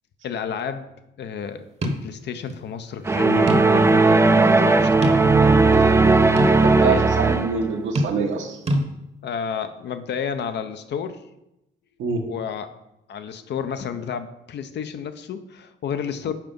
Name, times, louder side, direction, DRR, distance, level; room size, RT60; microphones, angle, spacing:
voice 1, 0.2-0.9 1.2-5.3 5.7-5.9 6.8-7.1 9.2-11.2 12.3-12.7 13.1-16.3, left 7 dB, 60° left, 10 dB, 0.6 m, -31 dB
sound 1, 1.8-2.1 2.5-2.6 3.5-3.9 4.3-4.4 5.0-5.6 6.4-6.6 7.9-8.4 8.7-8.8, equal, 30° right, 0.9 m, -25 dB
sound 2, 3.1-7.7, right 3 dB, 15° right, 0.4 m, -17 dB
voice 2, 6.5-8.6 12.0-12.2, right 5 dB, 75° right, 3 dB, 1.2 m, -25 dB
5.8 x 4.6 x 5.2 m, 0.89 s
cardioid pair, 90°, 20 cm